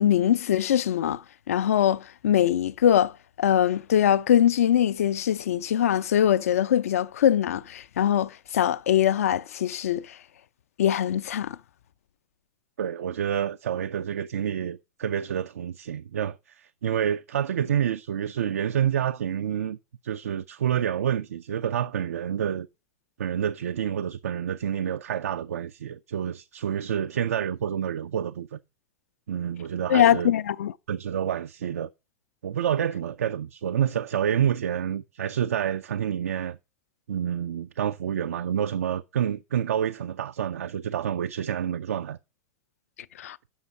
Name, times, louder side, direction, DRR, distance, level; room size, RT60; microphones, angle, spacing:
voice 1, 0.0-1.2 1.5-10.2 10.8-11.6 29.9-30.7 43.2-43.4, left 10 dB, 65° left, 0.4 m, -22 dB
voice 2, 12.8-19.8 20.0-22.7 23.2-28.6 29.3-30.3 30.9-31.9 32.4-36.6 37.1-42.2, right 9 dB, 70° right, 0.3 m, -28 dB
7.0 x 5.5 x 4.8 m
figure-of-eight pair, 90°, 8 cm